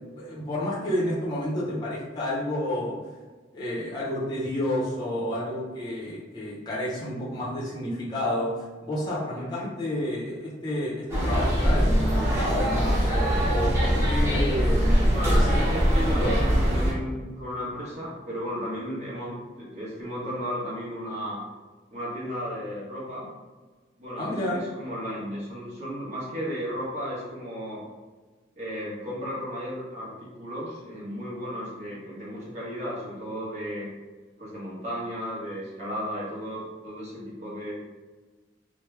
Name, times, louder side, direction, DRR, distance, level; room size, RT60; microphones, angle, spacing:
voice 1, 0.1-3.0 3.5-8.5 8.8-15.5 16.1-16.4 24.2-24.6, left 1 dB, 25° left, -6 dB, 0.7 m, -30 dB
voice 2, 9.3-9.7 15.1-21.4 21.9-23.3 24.0-27.8 28.6-33.9 34.4-37.7, equal, 40° right, -7 dB, 1.2 m, -34 dB
sound 1, 11.1-16.9, equal, 15° right, 0.9 m, -22 dB
3.1 x 2.1 x 3.2 m, 1.3 s
head